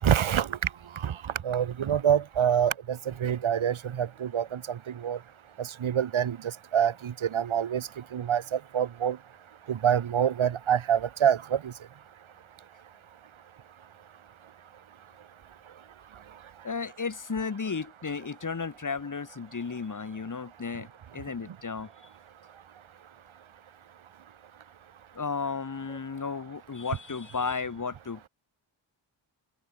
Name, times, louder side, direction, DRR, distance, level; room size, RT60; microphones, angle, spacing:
voice 1, 0.0-5.2 5.6-9.2 9.7-11.7, right 9 dB, 80° right, 6.0 m, -27 dB
voice 2, 16.6-20.9 21.1-21.9 25.1-28.3, left 5 dB, 40° left, 3.8 m, -34 dB
open air
cardioid pair, 85°, 47 cm